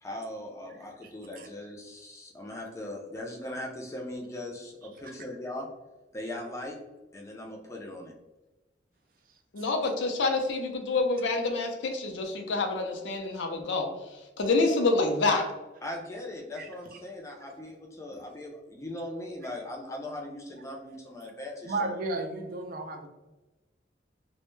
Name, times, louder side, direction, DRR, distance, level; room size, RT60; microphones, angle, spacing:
voice 1, 0.0-5.7 6.1-6.8 7.1-8.1 15.3-15.5 15.8-21.9, left 1 dB, 15° left, 0 dB, 0.4 m, -39 dB
voice 2, 9.5-13.9 14.4-15.4, left 3 dB, 85° left, 4 dB, 0.5 m, -27 dB
voice 3, 21.7-23.1, right 3 dB, 50° right, 4 dB, 0.4 m, -33 dB
2.1 x 2.1 x 3.0 m, 1.1 s
head